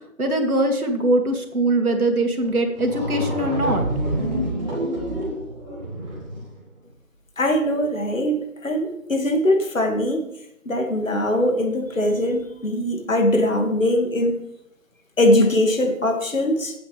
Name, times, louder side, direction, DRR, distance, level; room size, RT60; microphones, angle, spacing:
voice 1, 0.2-3.9, right 1 dB, 90° right, 4 dB, 2.4 m, -22 dB
sound 1, 2.4-2.5 2.8-6.5, right 1 dB, 30° right, 3.8 m, -27 dB
voice 2, 7.4-10.2 10.7-14.4 15.2-16.7, left 1 dB, 65° left, 3 dB, 2.4 m, -21 dB
16.5 x 7.9 x 3.5 m, 0.79 s
figure-of-eight pair, 180°, 43 cm